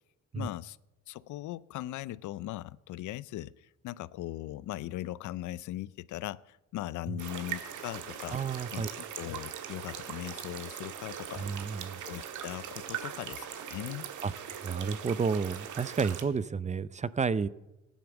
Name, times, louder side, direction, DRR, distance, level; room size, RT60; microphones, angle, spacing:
voice 1, 0.3-0.8 1.1-8.4 8.7-11.5 12.1-14.1, left 15 dB, 75° left, 20 dB, 0.5 m, -39 dB
sound 1, 7.2-16.2, right 9 dB, 80° right, 1.6 m, -41 dB
voice 2, 8.3-8.9 11.4-12.0 14.2-14.3 14.6-17.5, right 5 dB, 25° right, 18 dB, 0.5 m, -31 dB
15.0 x 10.0 x 7.0 m, 0.99 s
cardioid pair, 90°, 30 cm